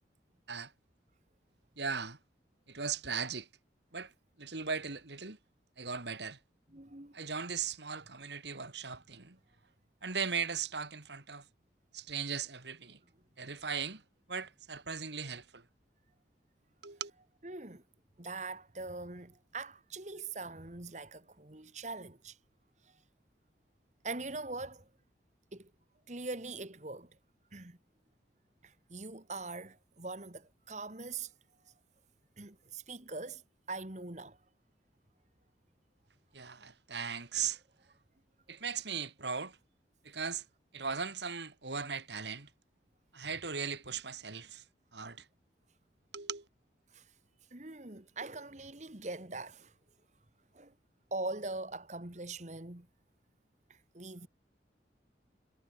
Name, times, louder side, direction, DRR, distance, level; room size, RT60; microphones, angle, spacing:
voice 1, 1.8-2.2 2.7-3.5 3.9-4.1 4.4-5.4 5.8-6.4 7.1-9.4 10.0-11.4 11.9-13.0 13.4-14.0 14.3-15.6 16.8-17.1 36.3-37.6 38.5-39.6 40.0-40.4 40.7-42.5 43.1-44.6 44.9-45.2 46.1-46.4, right 6 dB, 70° right, 2.4 m, -38 dB
voice 2, 6.7-7.1 17.4-17.8 18.2-22.4 22.8-23.0 24.0-24.9 25.5-25.7 26.1-27.2 27.5-27.8 28.6-31.3 31.7-31.8 32.4-33.4 33.7-34.4 43.2-43.4 46.9-47.1 47.5-49.7 50.5-50.7 51.1-52.9 53.7-54.3, right 3 dB, 40° right, 1.9 m, -42 dB
head